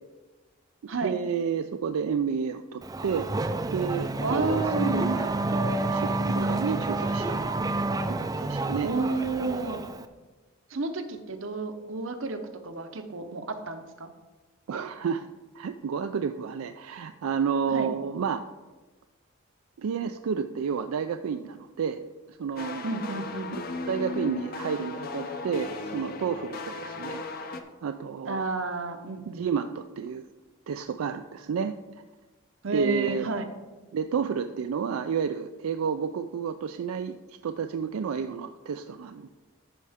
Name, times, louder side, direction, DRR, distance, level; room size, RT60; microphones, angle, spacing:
voice 1, 1.0-3.3 3.7-7.6 8.1-8.9 14.7-15.2 15.5-18.4 19.8-22.0 22.3-22.9 23.5-28.4 29.3-30.2 30.7-31.8 32.7-33.3 33.9-39.3, right 6 dB, 90° right, 8 dB, 0.4 m, -31 dB
Race car auto racing / Accelerating revving vroom, 2.8-10.0, right 2 dB, 15° right, 0.3 m, -29 dB
voice 2, 4.2-5.0 8.8-9.8 10.7-14.1 17.7-17.9 22.8-23.5 28.3-29.4 32.6-33.5, right 3 dB, 70° right, 8 dB, 0.8 m, -31 dB
sound 1, 22.6-27.6, left 3 dB, 45° left, 0.6 m, -36 dB
14.0 x 5.5 x 3.5 m, 1.2 s
head